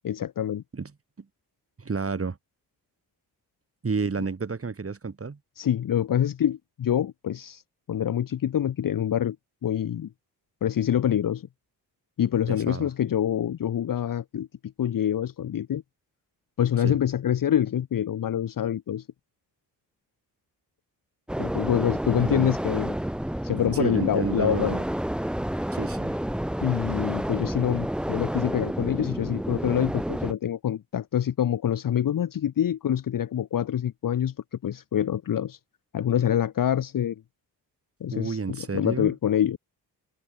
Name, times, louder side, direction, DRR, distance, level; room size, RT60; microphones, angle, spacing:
voice 1, 0.0-0.6 5.6-7.6 7.9-9.4 9.6-10.1 10.6-11.5 12.2-15.8 16.6-19.1 21.4-23.0 23.4-24.8 26.6-34.3 34.6-35.6 35.9-37.2 38.0-39.6, left 10 dB, 55° left, 1.0 m, -26 dB
voice 2, 1.8-2.4 3.8-5.4 12.5-12.9 16.8-17.0 22.1-22.5 23.7-24.8 25.7-26.2 38.1-39.1, right 4 dB, 35° right, 4.1 m, -30 dB
sound 1, 21.3-30.3, equal, ahead, 0.7 m, -30 dB
cardioid pair, 70°, 40 cm